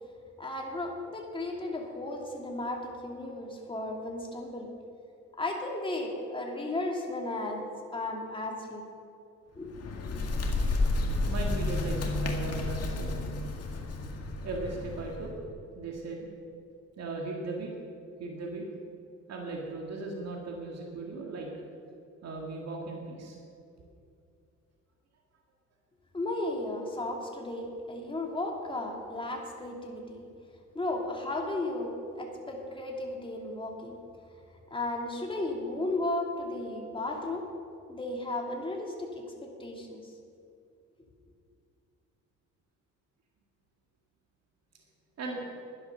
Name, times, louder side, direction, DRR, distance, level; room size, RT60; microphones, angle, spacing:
voice 1, 0.4-4.7 5.4-7.6 7.9-8.8 9.6-10.2 26.1-30.2 30.7-34.0 34.7-37.5 37.9-40.1, left 2 dB, 15° left, 0 dB, 2.4 m, -35 dB
Bird, 9.6-15.3, left 2 dB, 55° left, 2.1 m, -31 dB
voice 2, 11.2-13.1 14.4-15.3 15.8-16.3 17.0-17.7 18.2-18.6 19.3-21.5 22.2-23.4 45.2-45.4, right 3 dB, 60° right, -1 dB, 2.2 m, -37 dB
11.5 x 10.5 x 6.7 m, 2.5 s
cardioid pair, 90°, 30 cm